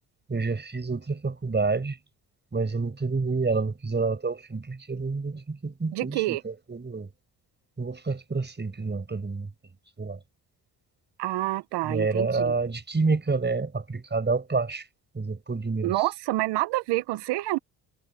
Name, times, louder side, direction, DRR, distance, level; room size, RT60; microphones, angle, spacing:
voice 1, 0.3-2.0 2.5-7.1 7.8-9.5 10.0-10.2 11.9-14.8 15.2-15.9, right 4 dB, 25° right, 5.3 m, -28 dB
voice 2, 5.9-6.4 11.2-12.5 15.8-17.6, right 18 dB, 90° right, 1.3 m, -27 dB
supercardioid pair, 70°, 40 cm